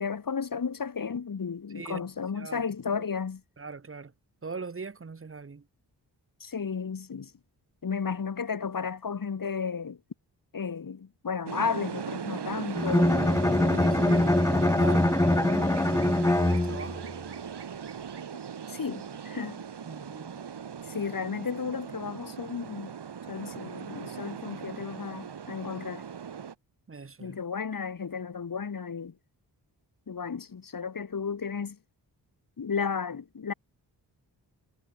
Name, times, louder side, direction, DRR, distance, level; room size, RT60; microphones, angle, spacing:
voice 1, 0.0-3.4 6.4-7.3 7.8-10.0 10.5-14.2 18.7-19.6 20.9-22.9 23.3-26.0 27.2-29.1 30.1-31.8 32.6-33.5, left 6 dB, 55° left, 2.8 m, -33 dB
voice 2, 1.7-3.1 3.6-4.1 4.4-5.6 13.7-14.3 14.6-17.1 19.8-20.4 26.9-27.4, right 4 dB, 30° right, 1.5 m, -41 dB
sound 1, 11.5-26.5, right 7 dB, 75° right, 4.8 m, -38 dB
Bowed string instrument, 12.8-17.1, left 1 dB, 10° left, 0.8 m, -23 dB
cardioid pair, 75°, 41 cm